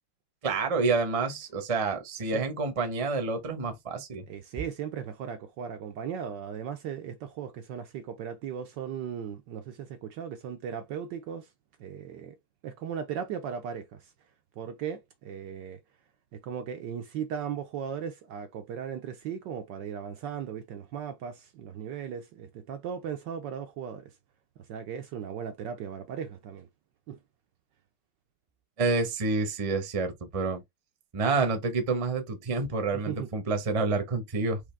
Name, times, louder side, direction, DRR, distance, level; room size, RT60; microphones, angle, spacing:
voice 1, 0.4-4.2 28.8-30.6 31.1-34.6, right 3 dB, 30° right, 0.7 m, -28 dB
voice 2, 4.3-11.5 11.8-12.4 12.6-14.1 14.6-15.8 16.3-24.1 24.7-26.7 27.1-27.2 32.9-33.3, right 8 dB, 70° right, 1.1 m, -37 dB
5.0 x 3.1 x 3.4 m
omnidirectional pair, 2.3 m